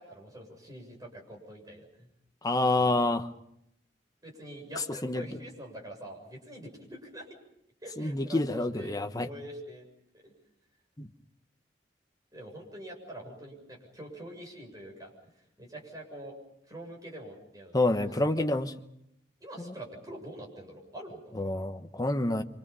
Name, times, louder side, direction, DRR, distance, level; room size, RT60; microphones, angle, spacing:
voice 1, 0.0-2.1 2.7-3.0 4.2-7.3 7.8-9.9 10.1-10.3 12.3-16.4 16.7-18.5 19.4-21.5, right 1 dB, 20° right, 1 dB, 7.4 m, -45 dB
voice 2, 2.4-3.3 5.0-5.3 8.0-9.3 11.0-11.1 17.7-18.7 19.7-19.8 21.3-22.4, left 2 dB, 20° left, 7 dB, 1.2 m, -27 dB
28.0 x 26.0 x 5.6 m, 0.76 s
head